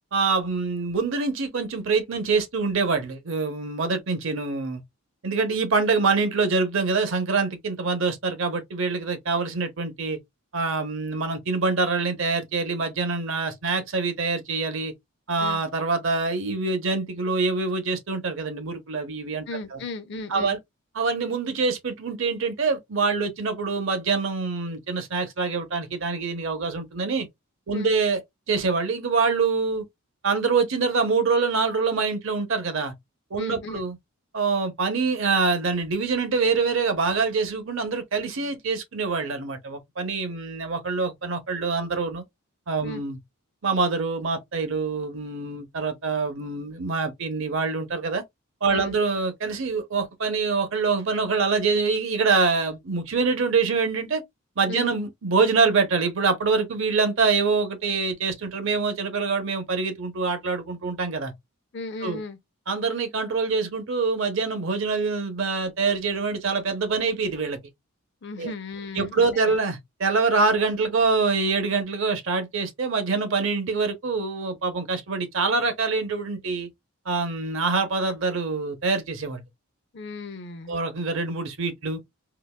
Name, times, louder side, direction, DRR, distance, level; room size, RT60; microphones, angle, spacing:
voice 1, 0.1-4.8 5.2-10.2 10.5-14.9 15.3-19.5 19.7-19.8 20.3-20.6 20.9-27.3 27.7-28.2 28.5-29.8 30.2-32.9 33.3-34.0 34.3-42.2 42.7-43.2 43.6-48.2 48.6-54.2 54.6-61.3 62.0-62.2 62.7-67.6 68.4-68.5 68.9-76.7 77.1-79.4 80.7-82.0, right 4 dB, 60° right, 0.7 m, -25 dB
voice 2, 19.5-20.6 27.7-27.9 33.4-33.8 42.8-43.0 48.7-49.0 54.7-54.9 61.7-62.4 68.2-69.5 79.9-80.8, left 3 dB, 55° left, 0.6 m, -36 dB
3.8 x 2.4 x 2.2 m
head